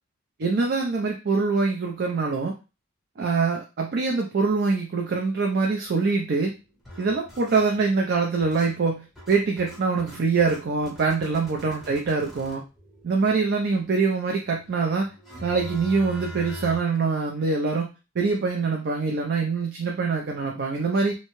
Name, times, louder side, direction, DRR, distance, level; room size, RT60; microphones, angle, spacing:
voice 1, 0.4-2.5 3.2-6.5 7.0-12.6 13.0-15.1 15.4-17.9 18.2-21.2, right 4 dB, 50° right, 1 dB, 0.4 m, -24 dB
sound 1, 5.8-6.4 6.8-16.8, equal, ahead, 0.8 m, -43 dB
2.7 x 2.1 x 3.0 m, 0.29 s
head